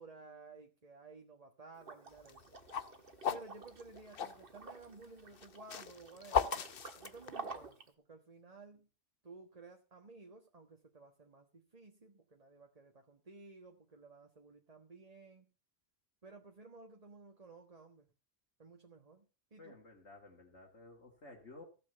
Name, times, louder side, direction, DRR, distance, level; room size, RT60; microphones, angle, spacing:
voice 1, 0.0-2.5 3.3-6.5 7.0-8.9 9.2-15.5 16.2-18.1 18.6-19.3 19.5-19.8, right 3 dB, 30° right, 4 dB, 1.5 m, -55 dB
Liquid, 1.8-7.9, right 4 dB, 50° right, 1.7 m, -51 dB
sound 1, 2.2-4.4 5.3-7.7, left 7 dB, 50° left, 1.0 m, -36 dB
voice 2, 19.6-21.6, left 2 dB, 70° left, -2 dB, 2.9 m, -54 dB
16.0 x 7.6 x 6.8 m, 0.34 s
omnidirectional pair, 1.3 m